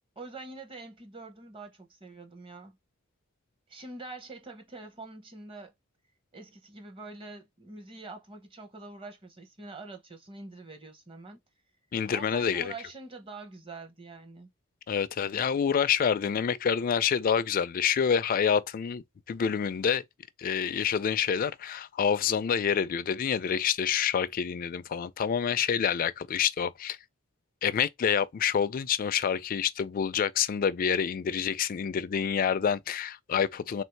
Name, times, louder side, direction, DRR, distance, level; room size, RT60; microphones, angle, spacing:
voice 1, 0.2-2.8 3.7-5.7 6.3-11.4 12.1-14.5, right 3 dB, 25° right, 0.8 m, -45 dB
voice 2, 11.9-12.7 14.9-20.0 20.4-27.0 27.6-33.8, left 7 dB, 40° left, 0.3 m, -27 dB
3.4 x 2.6 x 4.4 m
head